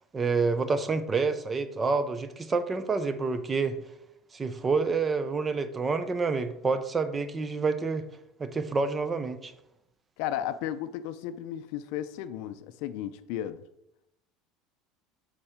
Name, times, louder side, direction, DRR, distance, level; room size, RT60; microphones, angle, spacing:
voice 1, 0.1-3.8 4.3-8.0 8.4-9.5, right 4 dB, 15° right, 11 dB, 0.5 m, -28 dB
voice 2, 10.2-13.6, left 11 dB, 65° left, 12 dB, 0.5 m, -34 dB
7.1 x 4.3 x 5.0 m, 0.82 s
cardioid pair, 165°, 0 cm